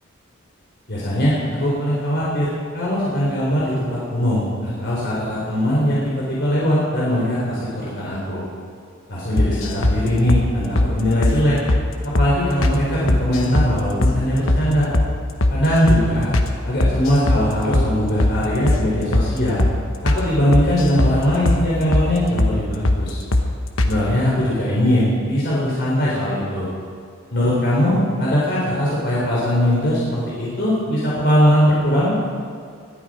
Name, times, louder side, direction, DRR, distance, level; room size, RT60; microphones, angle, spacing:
voice 1, 0.9-8.4 9.1-11.5 12.1-14.9 15.5-16.3 16.6-19.6 20.0-23.2 23.8-26.7 27.3-32.2, equal, 55° left, -6 dB, 3.9 m, -20 dB
sound 1, 9.4-10.0 10.3-10.5 10.8-10.9 11.2-11.4 11.7-11.8 12.2-12.3 12.6-12.8 13.1-13.7 14.0-14.2 14.5-14.6 14.9-15.1 15.4-15.6 15.9-16.0 16.3-16.5 16.8-17.4 17.7-17.9 18.2-18.4 18.7-18.8 19.1-19.3 19.6-19.8 20.1-20.2 20.5-21.2 21.5-21.6 21.9-22.1 22.4-22.5 22.8-23.0 23.3-23.5 23.8-23.9, left 1 dB, 80° left, 1.2 m, -18 dB
20.5 x 12.5 x 5.0 m, 2.3 s
head